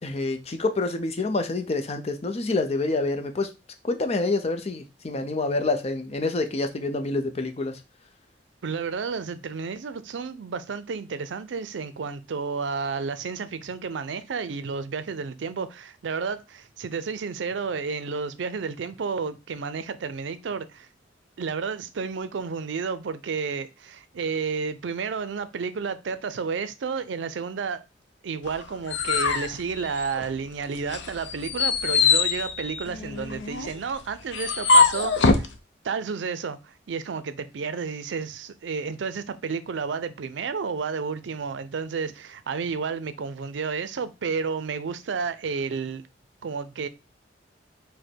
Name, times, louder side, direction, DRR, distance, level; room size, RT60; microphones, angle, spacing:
voice 1, 0.0-3.5 3.8-7.8, left 3 dB, 35° left, 0.6 m, -27 dB
voice 2, 8.6-20.9 21.4-27.8 28.2-35.5 35.8-46.0 46.4-46.9, right 5 dB, 90° right, 0.4 m, -31 dB
sound 1, 28.5-30.5 30.9-35.5, left 4 dB, 80° left, 0.6 m, -23 dB
5.0 x 2.1 x 4.4 m
head